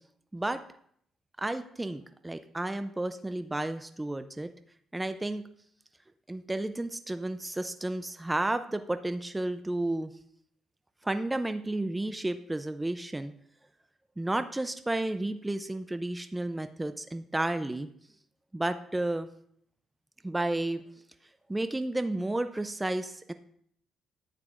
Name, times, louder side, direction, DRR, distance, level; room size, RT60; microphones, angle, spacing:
voice 1, 1.4-4.5 4.9-5.4 6.3-10.1 11.0-13.3 14.2-17.9 18.5-19.3 20.2-20.8 21.5-23.3, right 2 dB, 15° right, 10 dB, 0.5 m, -32 dB
10.5 x 8.7 x 2.5 m, 0.65 s
cardioid pair, 90°, 0 cm